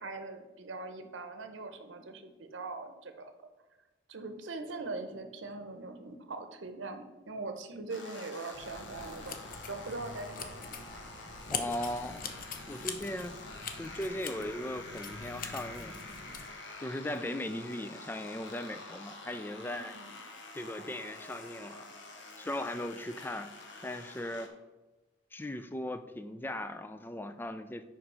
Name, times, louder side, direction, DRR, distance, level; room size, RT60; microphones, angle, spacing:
voice 1, 0.0-3.3 4.1-9.4 9.7-10.8 17.2-17.5 19.6-20.2, right 3 dB, 75° right, 7 dB, 0.8 m, -42 dB
sound 1, 7.9-24.5, left 2 dB, 65° left, 1.1 m, -48 dB
sound 2, 8.5-16.5, left 5 dB, 45° left, 0.7 m, -43 dB
voice 2, 11.5-12.3 12.7-13.4 13.8-16.0 16.8-20.0 20.5-21.9 22.4-23.5 23.8-24.5 25.3-27.8, left 1 dB, 10° left, 10 dB, 0.3 m, -38 dB
5.6 x 5.2 x 5.4 m, 1.1 s
head